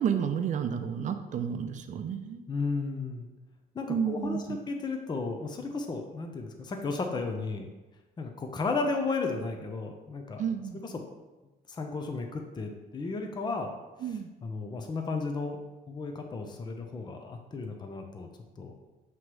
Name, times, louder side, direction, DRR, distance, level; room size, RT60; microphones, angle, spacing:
voice 1, 0.0-2.4 3.9-4.6 10.4-10.8 14.0-14.3, right 7 dB, 45° right, 8 dB, 0.6 m, -31 dB
voice 2, 2.5-3.3 3.7-7.7 8.2-10.4 10.7-11.0 11.7-13.7 14.0-15.6 15.9-18.3 18.6-18.7, left 3 dB, 25° left, 3 dB, 0.7 m, -34 dB
7.7 x 3.0 x 4.8 m, 1.1 s
cardioid pair, 110°, 17 cm